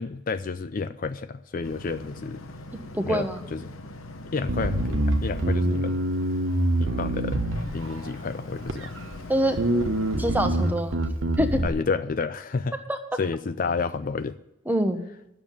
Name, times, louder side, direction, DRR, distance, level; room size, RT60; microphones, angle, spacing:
voice 1, 0.0-2.4 3.0-3.7 4.3-6.0 6.8-7.4 7.7-8.9 11.6-12.8 13.2-14.4, left 4 dB, 40° left, 11 dB, 0.4 m, -30 dB
Boat Water vehicle, 1.6-10.7, left 2 dB, 85° left, 1.1 m, -42 dB
voice 2, 2.9-3.4 9.3-9.6 10.2-11.0 11.4-11.6 12.9-13.0 14.7-15.0, equal, 10° right, 7 dB, 1.0 m, -24 dB
Bass guitar, 4.5-8.1 8.7-9.2 9.6-11.7, right 1 dB, 65° right, 1.1 m, -25 dB
10.5 x 7.0 x 9.1 m, 0.85 s
head